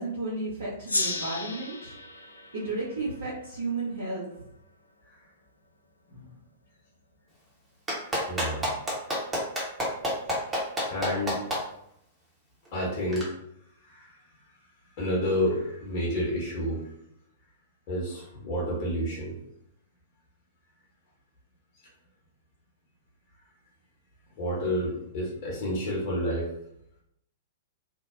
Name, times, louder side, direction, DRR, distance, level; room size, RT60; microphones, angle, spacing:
voice 1, 0.0-1.9 2.5-4.2, right 2 dB, 60° right, -10 dB, 0.9 m, -33 dB
Gong, 0.9-4.0, left 2 dB, 80° left, 0.3 m, -34 dB
Clapping, 7.9-11.6 13.1-13.2, equal, 10° right, 0.8 m, -27 dB
voice 2, 8.0-8.7 10.5-11.4 12.7-13.3 13.8-14.2 15.0-16.8 17.9-19.4 24.4-26.5, equal, 45° left, -4 dB, 0.8 m, -30 dB
2.6 x 2.0 x 2.4 m, 0.75 s
figure-of-eight pair, 105°, 0 cm